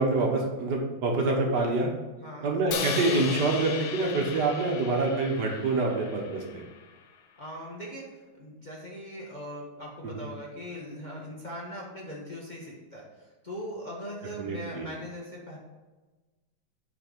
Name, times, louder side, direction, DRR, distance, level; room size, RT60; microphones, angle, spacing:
voice 1, 0.0-1.9 2.4-6.6 10.0-10.3 14.4-14.9, right 3 dB, 60° right, 1 dB, 1.6 m, -26 dB
Crash cymbal, 2.7-6.9, left 7 dB, 85° left, 1.6 m, -36 dB
voice 2, 7.4-8.1 8.4-15.6, equal, 25° left, -4 dB, 1.2 m, -40 dB
8.6 x 4.5 x 5.2 m, 1.2 s
omnidirectional pair, 2.2 m